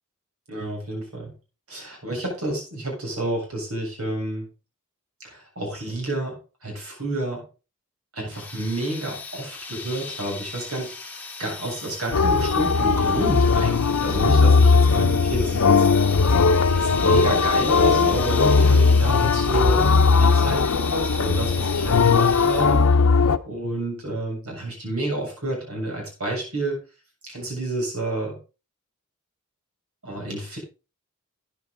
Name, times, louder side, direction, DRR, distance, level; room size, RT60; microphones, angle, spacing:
voice 1, 0.5-1.3 1.7-4.5 5.2-7.4 8.1-15.9 16.8-19.9 20.1-22.9 23.4-26.8 27.2-28.4 30.0-30.6, right 1 dB, 85° right, 0 dB, 7.3 m, -29 dB
sound 1, 8.3-23.1, left 4 dB, 10° left, 1.7 m, -36 dB
sound 2, 12.1-23.4, left 4 dB, 75° left, 0.7 m, -18 dB
13.0 x 9.6 x 3.9 m, 0.31 s
head